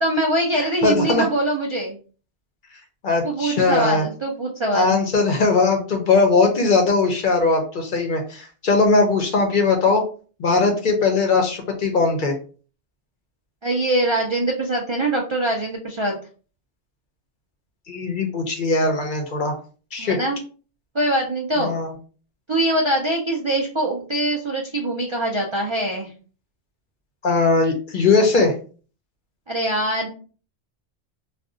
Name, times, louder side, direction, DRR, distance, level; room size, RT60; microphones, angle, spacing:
voice 1, 0.0-2.0 3.2-5.0 13.6-16.2 20.0-20.4 20.9-21.7 22.5-26.1 29.5-30.1, right 1 dB, 45° right, 0 dB, 0.3 m, -23 dB
voice 2, 0.6-1.2 3.0-4.0 4.7-10.0 10.4-12.3 17.9-19.6 19.9-20.2 21.6-21.9 27.2-28.5, left 3 dB, 55° left, 3 dB, 0.7 m, -19 dB
2.5 x 2.3 x 3.7 m, 0.39 s
omnidirectional pair, 1.2 m